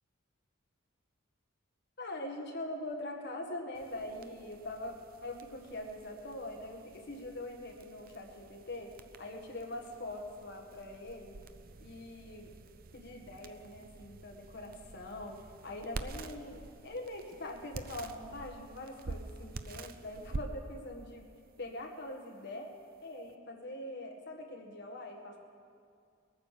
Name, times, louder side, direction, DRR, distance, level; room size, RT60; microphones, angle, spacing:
voice 1, 2.0-8.9 9.2-11.4 11.8-12.5 12.9-21.3 21.6-22.7 23.0-25.4, left 1 dB, 55° left, 2 dB, 1.7 m, -43 dB
sound 1, 3.7-23.3, right 3 dB, 45° right, 0.5 m, -48 dB
20.0 x 9.2 x 6.8 m, 2.4 s
head